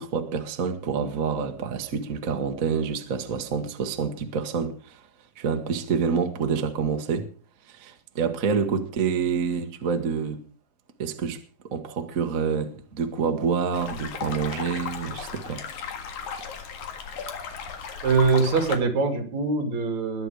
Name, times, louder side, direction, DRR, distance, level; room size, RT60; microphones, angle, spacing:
voice 1, 0.0-5.0 5.4-7.3 7.7-10.4 11.0-11.4 11.7-15.6, right 6 dB, 45° right, 1.0 m, -27 dB
sound 1, 13.7-18.8, left 6 dB, 70° left, 3.1 m, -35 dB
voice 2, 18.0-20.3, right 4 dB, 60° right, 3.5 m, -23 dB
21.0 x 9.2 x 4.8 m
omnidirectional pair, 3.6 m